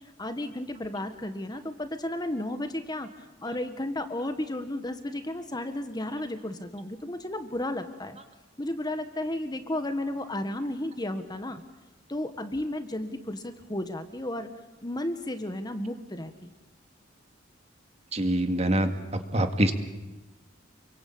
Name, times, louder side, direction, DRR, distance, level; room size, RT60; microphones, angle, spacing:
voice 1, 0.0-8.2 8.6-11.6 12.1-14.5 14.8-16.5, left 1 dB, 20° left, 9 dB, 1.6 m, -33 dB
voice 2, 18.1-19.7, right 1 dB, 35° right, 7 dB, 2.3 m, -25 dB
28.5 x 23.5 x 8.7 m, 1.1 s
head